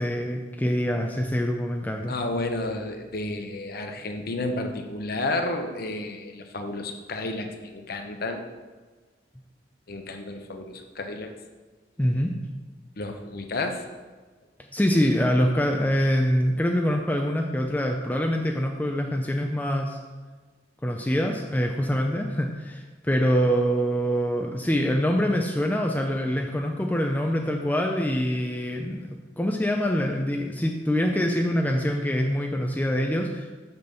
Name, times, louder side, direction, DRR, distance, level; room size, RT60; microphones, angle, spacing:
voice 1, 0.0-2.1 12.0-12.3 14.7-20.0 20.8-29.0 29.4-33.5, equal, 10° left, 2 dB, 0.5 m, -25 dB
voice 2, 2.1-8.4 9.9-11.3 13.0-13.8, left 2 dB, 55° left, 5 dB, 0.8 m, -31 dB
5.9 x 5.4 x 6.8 m, 1.3 s
head